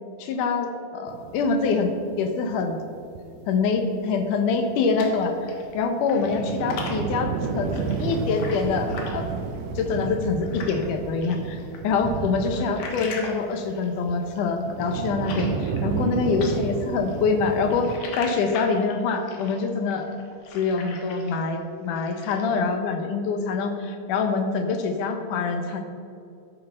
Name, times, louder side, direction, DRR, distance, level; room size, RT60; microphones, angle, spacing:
voice 1, 0.2-1.9 2.2-2.8 3.5-9.3 9.8-20.1 20.5-25.8, left 4 dB, 85° left, 5 dB, 2.6 m, -25 dB
sound 1, 1.1-4.1 4.4-4.5 4.7-4.8 5.1-5.2 5.6-13.3 13.7-18.0, right 5 dB, 80° right, 1.6 m, -32 dB
sound 2, 4.5-5.8 6.0-10.9 11.2-16.1 16.4-21.5 21.8-22.6, left 4 dB, 65° left, 2.5 m, -40 dB
12.5 x 6.6 x 5.5 m, 2.5 s
omnidirectional pair, 3.5 m